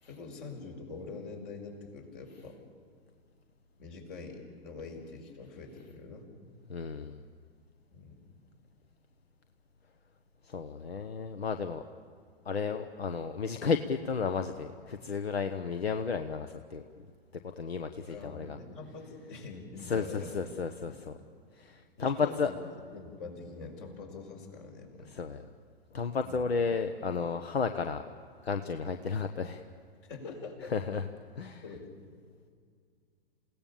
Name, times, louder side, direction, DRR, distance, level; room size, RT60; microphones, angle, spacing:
voice 1, 0.0-2.6 3.8-6.3 7.9-8.2 18.1-20.5 20.9-21.0 22.0-22.6 22.9-25.1 26.2-26.4 30.1-30.7 31.6-31.9, left 4 dB, 60° left, 2 dB, 5.5 m, -44 dB
voice 2, 6.7-7.2 10.4-11.8 12.4-16.8 17.6-18.6 19.8-21.1 21.6-22.5 25.1-25.4 25.9-28.0 28.4-29.6 30.7-31.1 31.4-31.6, left 5 dB, 85° left, 8 dB, 1.1 m, -33 dB
28.5 x 17.5 x 7.1 m, 2.2 s
hypercardioid pair, 110°, 30 cm